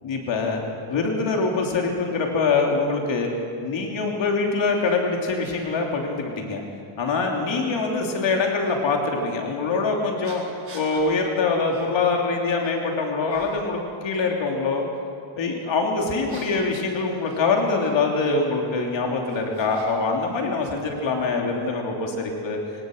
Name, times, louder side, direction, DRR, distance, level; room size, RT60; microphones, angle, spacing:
voice 1, 0.0-0.6 0.9-3.3 3.6-6.6 7.0-10.4 10.7-14.8 15.4-22.6, left 4 dB, 60° left, 0 dB, 3.1 m, -24 dB
sound 1, 4.8-4.9 5.4-5.6 6.5-6.6 8.6-8.8 10.2-11.1 11.7-11.9 12.3-12.8 13.3-13.8 16.0-17.9 18.9-20.2 20.4-21.3, right 3 dB, 25° right, 5.4 m, -46 dB
22.5 x 18.0 x 6.5 m, 2.4 s
cardioid pair, 130°, 50 cm